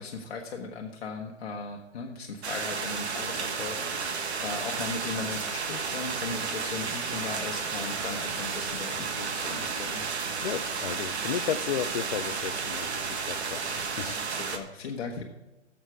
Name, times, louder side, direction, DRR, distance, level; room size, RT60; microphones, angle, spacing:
voice 1, 0.0-10.0 14.0-15.2, left 4 dB, 60° left, 1 dB, 1.2 m, -38 dB
sound 1, 2.4-14.6, right 5 dB, 65° right, 1.5 m, -32 dB
voice 2, 10.4-13.0 13.3-14.1, left 9 dB, 40° left, 15 dB, 0.5 m, -33 dB
11.0 x 7.5 x 4.7 m, 1.0 s
hypercardioid pair, 150°, 36 cm